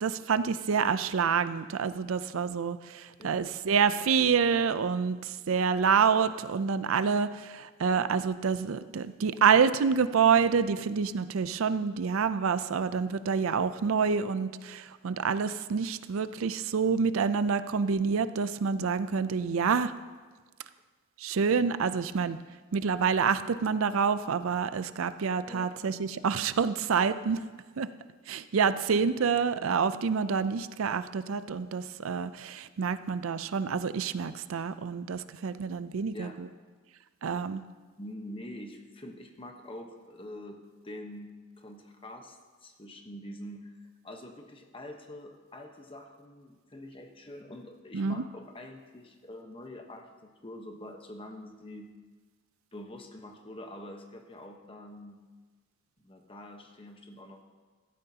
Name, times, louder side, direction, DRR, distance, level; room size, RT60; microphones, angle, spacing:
voice 1, 0.0-19.9 21.2-22.4 22.7-27.4 27.8-27.9 28.3-36.5 37.2-37.6 47.9-48.2, right 6 dB, 75° right, 13 dB, 0.5 m, -27 dB
voice 2, 25.5-25.8 35.3-35.4 36.1-36.4 38.0-40.6 40.8-43.7 44.0-51.9 52.7-55.2 56.0-57.4, left 1 dB, 25° left, 4 dB, 1.1 m, -45 dB
15.5 x 13.0 x 2.8 m, 1.4 s
head